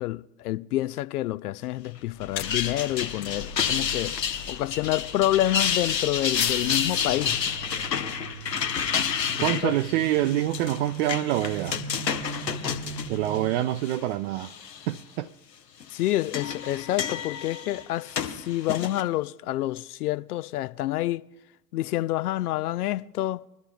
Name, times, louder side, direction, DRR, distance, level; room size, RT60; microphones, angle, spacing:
voice 1, 0.0-4.2 4.5-7.4 9.3-9.7 15.9-21.2 21.7-23.4, left 15 dB, 65° left, 0.5 m, -28 dB
sound 1, 2.1-8.5, left 9 dB, 45° left, 1.0 m, -40 dB
sound 2, 2.2-14.0 14.4-15.0 15.8-19.0, left 7 dB, 85° left, 1.0 m, -30 dB
sound 3, 6.6-13.5, right 7 dB, 90° right, 0.7 m, -39 dB
voice 2, 9.4-11.8 13.1-14.5 14.9-15.3, right 13 dB, 45° right, 0.5 m, -26 dB
22.0 x 12.5 x 2.3 m
figure-of-eight pair, 85°, 49 cm